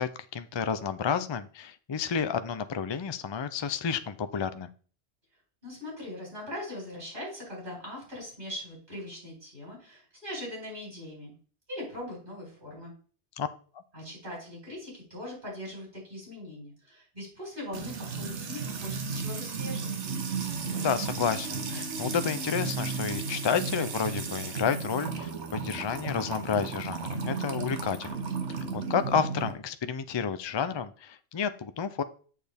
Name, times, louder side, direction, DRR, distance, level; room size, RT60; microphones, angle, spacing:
voice 1, 0.0-4.7 13.4-13.5 20.7-28.2 28.7-32.0, left 7 dB, 45° left, 12 dB, 0.3 m, -30 dB
voice 2, 5.6-11.3 11.7-12.9 13.9-20.0, left 1 dB, 45° right, -4 dB, 4.6 m, -41 dB
Music / Water tap faucet / Trickle dribble, 17.7-29.5, right 5 dB, 80° right, 1.3 m, -34 dB
7.5 x 6.4 x 3.5 m, 0.41 s
omnidirectional pair, 1.2 m